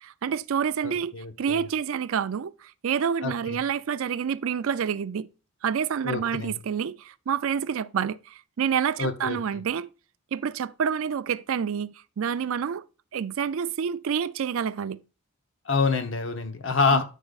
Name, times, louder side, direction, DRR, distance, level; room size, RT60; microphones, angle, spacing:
voice 1, 0.0-5.3 5.6-9.9 10.3-12.8 13.1-15.0 16.9-17.0, right 7 dB, 70° right, 0.4 m, -28 dB
voice 2, 0.8-1.6 3.2-3.6 6.0-6.5 9.0-9.4 15.7-17.0, left 4 dB, 60° left, 0.9 m, -26 dB
12.0 x 5.0 x 2.4 m
head